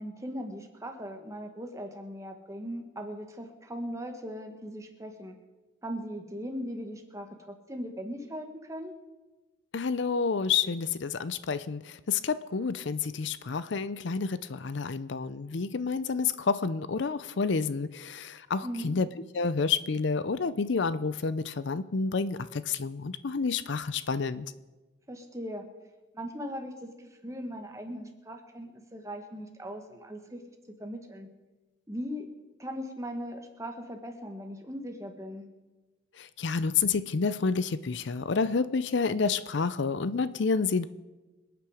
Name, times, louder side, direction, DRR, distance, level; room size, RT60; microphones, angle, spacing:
voice 1, 0.0-5.3 5.8-8.9 18.6-18.9 25.1-25.6 26.1-30.4 30.8-31.3 31.9-32.2 32.6-35.5, equal, 15° right, 4 dB, 1.5 m, -39 dB
voice 2, 9.7-19.1 19.3-24.5 36.2-40.9, left 5 dB, 60° left, 15 dB, 0.5 m, -29 dB
26.0 x 9.2 x 4.9 m, 1.2 s
head